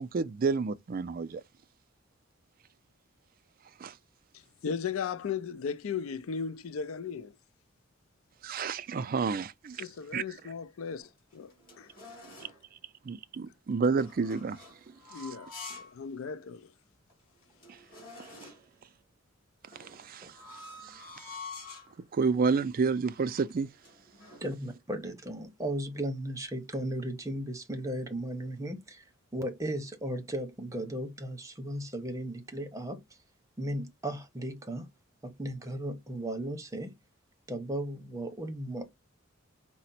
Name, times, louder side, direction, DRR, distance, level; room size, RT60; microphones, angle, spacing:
voice 1, 0.0-1.4 3.8-3.9 8.4-9.8 10.1-10.2 13.0-14.6 15.2-15.3 17.7-17.8 19.8-20.4 20.8-21.1 22.0-23.7, right 5 dB, 45° right, 0.4 m, -30 dB
voice 2, 4.6-7.3 9.8-11.9 15.1-16.7, left 6 dB, 85° left, 0.4 m, -36 dB
sound 1, 11.0-12.6 13.9-16.0 16.4-16.5 17.1-17.2 17.4-18.7 19.7-22.0 22.6-22.9 23.1-24.5, left 3 dB, 45° left, 2.4 m, -48 dB
voice 3, 24.4-29.0 29.3-33.0 33.6-34.9 35.2-36.9 37.5-38.9, right 1 dB, 15° right, 0.8 m, -36 dB
4.9 x 2.1 x 4.1 m
head